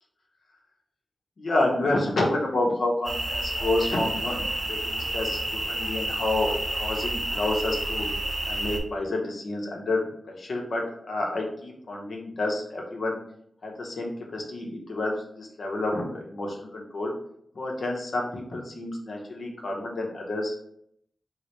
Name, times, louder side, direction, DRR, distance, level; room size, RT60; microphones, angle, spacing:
voice 1, 1.4-5.4 5.7-6.5 6.8-8.1 8.4-10.0 10.3-10.8 11.1-13.2 13.6-17.1 17.6-20.6, left 2 dB, 70° left, 0 dB, 0.9 m, -29 dB
sound 1, 3.0-8.8, right 1 dB, 25° right, 0.8 m, -30 dB
4.6 x 2.1 x 3.1 m, 0.69 s
wide cardioid pair, 95°, 0 cm